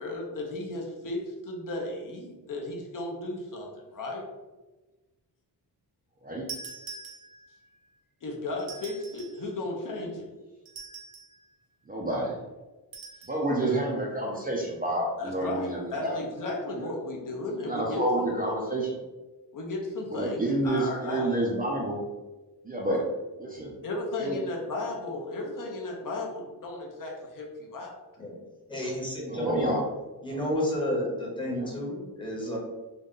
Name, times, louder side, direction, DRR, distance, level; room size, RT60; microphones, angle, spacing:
voice 1, 0.0-4.2 8.2-10.3 13.6-13.8 15.2-18.3 19.5-21.3 23.8-27.9, left 2 dB, 55° left, 0 dB, 0.7 m, -35 dB
sound 1, 6.5-7.6 8.6-9.4 10.7-11.4 12.9-13.4, right 5 dB, 60° right, 0.9 m, -43 dB
voice 2, 11.9-12.4 13.3-16.2 16.7-16.9 17.6-19.0 20.1-22.0 22.6-23.0 23.4-23.7 24.2-24.4 29.3-29.8 30.3-30.4 31.5-31.7, right 1 dB, 25° right, -3 dB, 0.4 m, -29 dB
voice 3, 28.7-29.8 30.2-32.6, equal, 10° left, -3 dB, 0.8 m, -30 dB
3.8 x 2.2 x 3.6 m, 1.2 s
wide cardioid pair, 180°, 39 cm